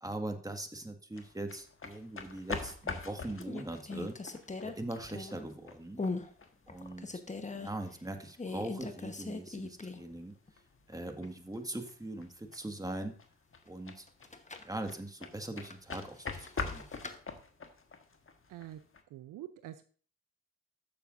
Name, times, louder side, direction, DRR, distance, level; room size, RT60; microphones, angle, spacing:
voice 1, 0.0-4.2 4.6-6.0 6.7-7.2 7.5-10.3 10.9-13.1 13.7-14.1 14.6-16.8, right 1 dB, 10° right, 5 dB, 1.8 m, -41 dB
sound 1, 1.1-19.0, left 4 dB, 40° left, 1.4 m, -45 dB
sound 2, 2.7-3.0 3.4-5.5 6.0-6.3 6.7-7.7 8.4-10.2 10.5-10.6 14.1-14.7 15.6-17.2, left 3 dB, 20° left, 1.1 m, -40 dB
voice 2, 18.5-18.8 19.1-19.8, right 13 dB, 70° right, 12 dB, 0.6 m, -45 dB
14.5 x 6.8 x 2.6 m, 0.42 s
hypercardioid pair, 40°, 34 cm